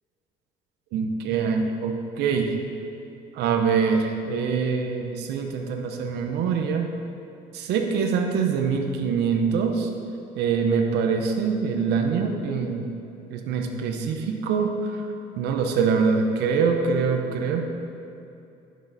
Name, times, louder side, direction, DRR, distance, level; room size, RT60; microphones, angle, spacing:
voice 1, 0.9-2.5 3.3-6.9 7.5-9.9 10.4-12.9 13.3-15.0 15.4-17.7, right 5 dB, 80° right, 4 dB, 0.8 m, -24 dB
10.5 x 6.6 x 4.0 m, 2.7 s
cardioid pair, 110°, 17 cm